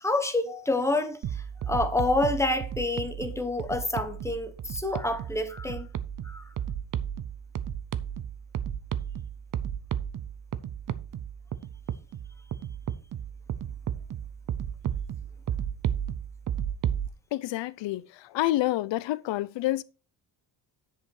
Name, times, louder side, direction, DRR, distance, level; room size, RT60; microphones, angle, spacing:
voice 1, 0.0-5.9 6.2-6.4, left 2 dB, 5° left, 0.9 m, -28 dB
sound 1, 1.2-17.1, right 9 dB, 45° right, 0.6 m, -34 dB
voice 2, 17.3-19.8, left 16 dB, 70° left, 0.6 m, -28 dB
10.0 x 5.5 x 4.8 m
wide cardioid pair, 175°, 45 cm